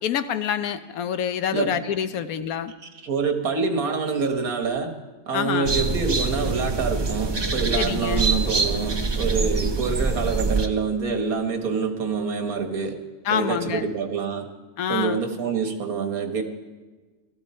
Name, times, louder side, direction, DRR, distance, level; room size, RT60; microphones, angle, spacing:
voice 1, 0.0-2.7 5.3-5.8 7.8-8.2 13.2-13.8 14.8-15.2, left 8 dB, 80° left, 11 dB, 1.2 m, -26 dB
voice 2, 3.0-4.9 5.3-13.0 13.3-14.5 14.9-16.4, right 5 dB, 85° right, 5 dB, 1.9 m, -26 dB
sound 1, 5.6-10.7, right 3 dB, 25° right, 0.5 m, -24 dB
17.0 x 13.5 x 4.3 m, 1.3 s
omnidirectional pair, 1.5 m